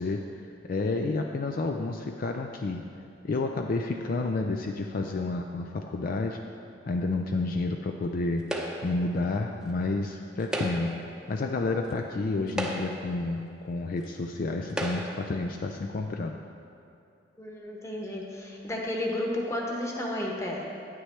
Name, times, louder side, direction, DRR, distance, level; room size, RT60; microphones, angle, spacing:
voice 1, 0.0-2.9 3.2-6.4 6.9-8.5 8.8-16.4, left 3 dB, 50° left, 3 dB, 0.4 m, -30 dB
sound 1, 8.5-9.0 10.4-11.0 11.9-12.0 12.5-13.1 14.0-14.1 14.7-15.3, equal, 5° right, 0.7 m, -33 dB
voice 2, 17.4-20.7, left 1 dB, 15° left, -2 dB, 1.1 m, -32 dB
9.5 x 9.2 x 3.3 m, 2.6 s
head